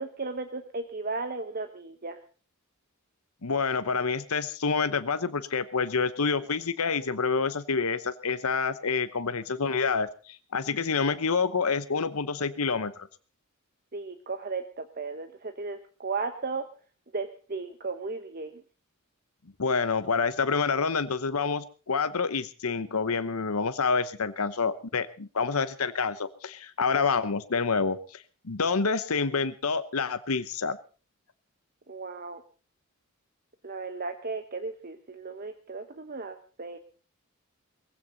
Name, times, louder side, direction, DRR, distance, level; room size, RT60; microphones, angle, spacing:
voice 1, 0.0-2.2 13.9-16.7 17.1-18.6 31.9-32.4 33.6-36.8, right 4 dB, 45° right, 8 dB, 1.1 m, -35 dB
voice 2, 3.4-12.9 19.6-30.8, left 5 dB, 85° left, 12 dB, 1.0 m, -28 dB
20.0 x 16.0 x 4.0 m, 0.37 s
head